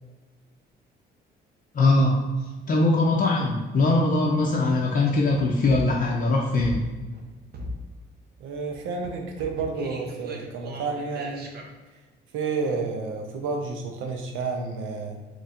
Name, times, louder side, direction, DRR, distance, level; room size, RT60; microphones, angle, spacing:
voice 1, 1.7-2.2 2.7-6.8, left 2 dB, 45° left, -2 dB, 0.5 m, -21 dB
sound 1, 5.0-7.3 7.5-8.1 8.6-11.6, left 1 dB, 55° right, 0.7 m, -38 dB
voice 2, 8.4-11.5 12.3-15.2, right 4 dB, 90° right, 3 dB, 0.6 m, -30 dB
4.1 x 3.0 x 2.4 m, 1.3 s
cardioid pair, 90°, 20 cm